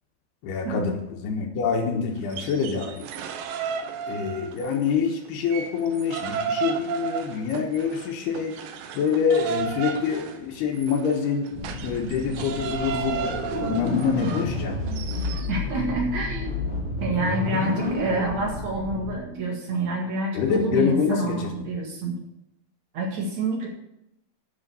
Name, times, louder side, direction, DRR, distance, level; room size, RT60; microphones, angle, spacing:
voice 1, 0.4-1.0 1.2-3.1 4.1-8.5 8.9-11.5 11.8-13.4 13.6-14.8 20.3-21.5, left 6 dB, 80° left, 1 dB, 3.2 m, -26 dB
sound 1, 2.2-4.9 5.3-15.5, right 7 dB, 70° right, 2.2 m, -33 dB
sound 2, 11.5-19.1, left 2 dB, 15° right, 2.1 m, -30 dB
voice 2, 15.5-16.5 17.0-22.1 22.9-23.7, right 2 dB, 50° right, -2 dB, 2.8 m, -28 dB
10.0 x 7.2 x 6.9 m, 0.83 s
omnidirectional pair, 4.8 m